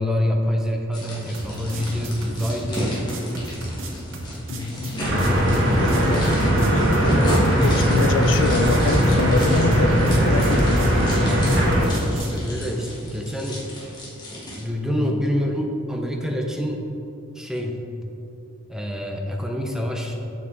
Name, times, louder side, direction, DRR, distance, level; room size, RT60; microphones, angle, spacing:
voice 1, 0.0-3.0 12.1-13.6 14.6-16.9 17.4-17.8 18.7-20.1, equal, 5° right, 1 dB, 0.5 m, -26 dB
sound 1, 0.9-14.6, equal, 20° left, 1.6 m, -32 dB
sound 2, 1.3-12.4, right 1 dB, 80° right, 0.9 m, -34 dB
voice 2, 4.5-5.1 5.8-6.2 6.7-10.9 14.9-15.1, left 3 dB, 65° left, 8 dB, 0.4 m, -26 dB
sound 3, 5.0-11.8, equal, 65° right, 1.5 m, -19 dB
7.0 x 6.1 x 3.9 m, 2.7 s
head